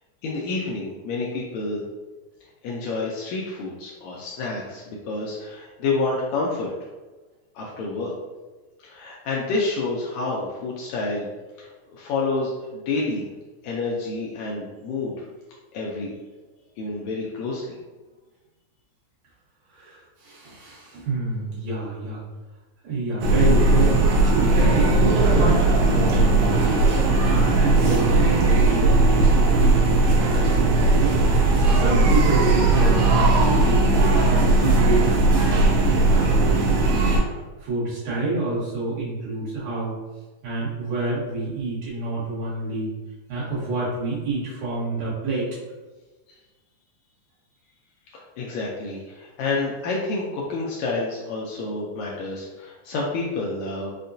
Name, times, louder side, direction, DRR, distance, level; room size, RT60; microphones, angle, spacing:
voice 1, 0.2-1.8 2.6-6.7 7.5-8.1 8.8-11.3 11.6-13.3 13.6-15.2 15.7-16.1 16.8-17.7 46.3-46.4 48.1-53.9, left 3 dB, 80° left, -3 dB, 1.7 m, -29 dB
voice 2, 19.7-22.2 22.8-26.8 27.2-37.1 37.6-40.0 40.4-42.9 43.3-45.5, right 2 dB, 70° right, -8 dB, 2.4 m, -28 dB
sound 1, 23.2-37.2, right 2 dB, 85° right, 2.1 m, -18 dB
5.4 x 2.2 x 2.6 m, 1.2 s
omnidirectional pair, 3.6 m